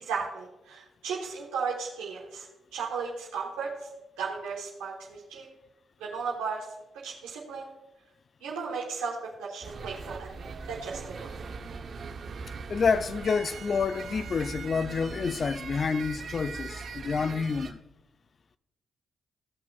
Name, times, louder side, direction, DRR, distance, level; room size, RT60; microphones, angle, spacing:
voice 1, 0.0-3.7 4.2-5.5 6.0-6.7 7.0-7.7 8.4-10.3 10.7-11.3, right 5 dB, 85° right, 1.0 m, -35 dB
sound 1, 9.6-17.7, right 4 dB, 55° right, 0.8 m, -40 dB
voice 2, 12.7-17.8, left 5 dB, 50° left, 0.4 m, -28 dB
15.5 x 5.8 x 2.3 m
hypercardioid pair, 50°, 0 cm